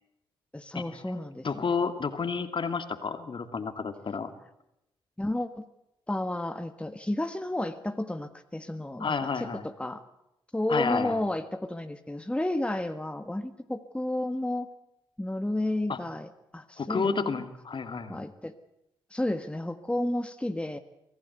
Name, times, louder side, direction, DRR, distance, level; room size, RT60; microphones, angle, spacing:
voice 1, 0.5-1.5 5.2-5.7 6.1-10.0 10.5-14.7 15.2-17.2 18.1-18.5 19.1-20.8, left 1 dB, 10° left, 8 dB, 1.6 m, -32 dB
voice 2, 1.4-4.3 9.0-9.7 10.7-11.2 15.9-16.0 16.8-18.3, left 5 dB, 45° left, 9 dB, 2.4 m, -30 dB
24.5 x 16.0 x 8.1 m, 0.88 s
hypercardioid pair, 40°, 11 cm